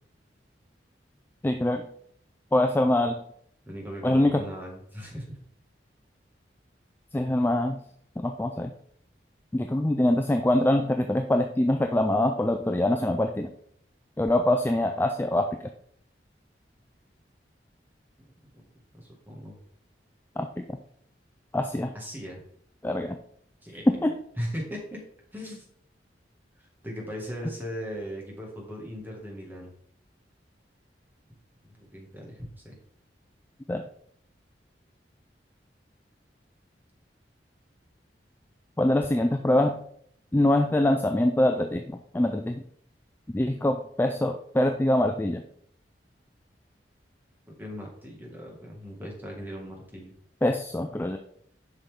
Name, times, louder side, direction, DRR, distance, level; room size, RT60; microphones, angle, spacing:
voice 1, 1.4-1.8 2.5-3.2 4.0-4.4 7.1-7.8 8.2-8.7 9.5-13.5 14.2-15.5 20.4-20.6 21.5-21.9 22.8-23.2 24.0-24.1 33.7-33.8 38.8-39.8 40.3-42.6 43.3-45.4 50.4-51.2, left 1 dB, 10° left, 5 dB, 0.3 m, -24 dB
voice 2, 3.7-5.4 19.0-19.6 21.9-22.4 23.6-24.1 24.4-25.0 25.3-25.7 26.6-29.7 31.6-32.8 47.5-50.2, equal, 10° right, -2 dB, 1.8 m, -38 dB
7.0 x 5.6 x 3.6 m, 0.66 s
head